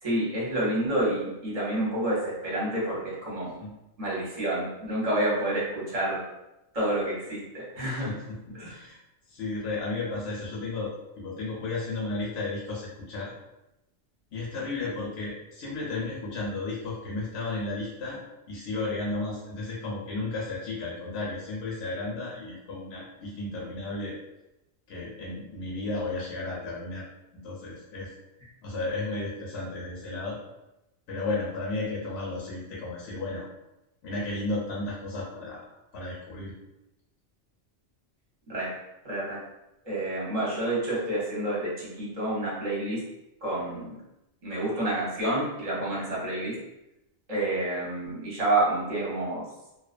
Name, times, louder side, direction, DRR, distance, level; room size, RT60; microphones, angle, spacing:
voice 1, 0.0-3.5 4.0-6.2 6.7-8.1 8.5-8.7 38.5-38.7 39.0-39.4 39.8-43.0 43.4-43.9 44.4-46.6 47.3-49.4, right 1 dB, 35° right, -6 dB, 0.8 m, -29 dB
voice 2, 7.8-9.0 9.3-13.3 14.3-18.2 18.5-24.2 24.9-27.0 27.3-28.1 28.6-30.4 31.1-33.5 34.0-35.7 35.9-36.5, left 2 dB, 70° left, -5 dB, 0.8 m, -33 dB
2.3 x 2.2 x 2.4 m, 0.93 s
omnidirectional pair, 1.2 m